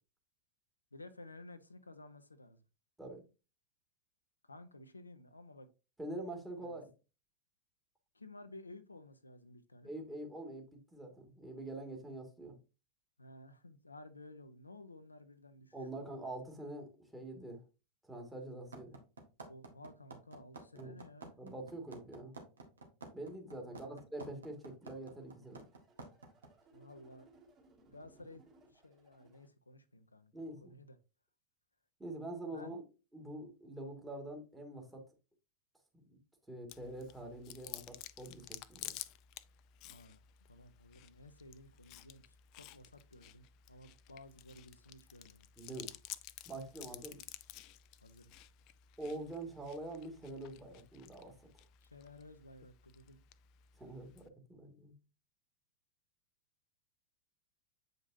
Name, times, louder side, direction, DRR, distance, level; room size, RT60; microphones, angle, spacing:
voice 1, 0.9-2.6 4.4-5.7 6.6-6.8 8.1-9.9 13.2-16.1 19.5-21.3 23.6-24.3 26.7-27.3 27.9-28.4 28.7-31.0 32.4-32.8 39.9-40.2 40.5-45.5 46.8-47.0 48.0-48.3 51.8-53.2, left 2 dB, 80° left, 0.6 m, -55 dB
voice 2, 6.0-6.9 9.8-12.6 15.7-17.6 18.1-19.0 20.7-21.0 21.4-22.3 23.1-25.7 30.3-30.7 32.0-32.8 33.1-35.0 35.9-36.2 36.5-38.9 45.6-45.9 46.5-47.2 49.0-51.3 53.8-54.9, right 1 dB, 10° right, 2.0 m, -45 dB
sound 1, 18.7-26.5, right 3 dB, 70° right, 1.6 m, -49 dB
sound 2, 24.4-29.5, right 2 dB, 30° right, 3.0 m, -65 dB
Chewing mastication, 36.7-54.3, left 14 dB, 40° left, 0.4 m, -53 dB
8.0 x 5.2 x 2.6 m
figure-of-eight pair, 90°, 0 cm